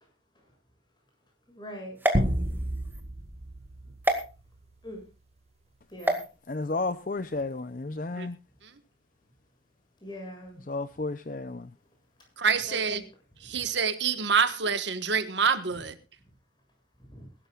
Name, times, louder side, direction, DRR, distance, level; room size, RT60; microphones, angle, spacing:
voice 1, 1.5-2.0 4.8-5.0 5.9-6.2 10.0-10.6 12.7-13.0 17.1-17.2, equal, 25° left, 7.4 m, -41 dB
sound 1, 2.0-3.0 4.0-4.2 6.0-6.3, right 1 dB, 10° right, 2.1 m, -28 dB
sound 2, 2.1-5.0, equal, 35° right, 1.6 m, -31 dB
voice 2, 6.5-8.4 10.7-11.7, left 3 dB, 45° left, 0.6 m, -32 dB
voice 3, 12.4-13.0 13.4-16.0, right 5 dB, 75° right, 1.5 m, -26 dB
22.0 x 12.5 x 2.5 m
head